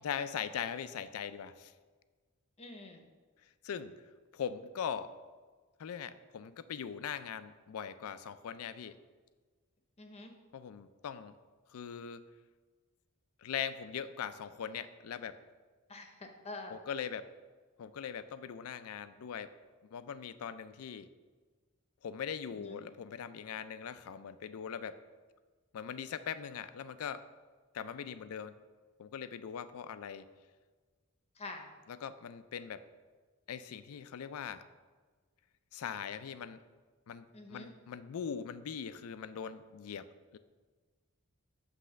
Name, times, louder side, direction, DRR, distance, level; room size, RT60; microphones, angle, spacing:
voice 1, 0.0-1.7 3.6-3.9 4.3-5.1 5.8-9.0 10.5-11.3 11.7-12.2 13.4-15.4 16.7-17.3 17.8-19.5 19.9-21.1 22.0-25.0 25.7-27.2 27.7-28.5 29.0-30.3 31.9-32.8 33.5-34.6 35.7-36.6 37.1-40.1 40.3-40.4, left 7 dB, 90° left, 13 dB, 0.4 m, -41 dB
voice 2, 2.6-3.0 10.0-10.3 15.9-16.8 22.6-22.8 31.4-31.7 37.3-37.7, left 2 dB, 30° left, 4 dB, 0.7 m, -46 dB
7.7 x 3.3 x 6.3 m, 1.4 s
head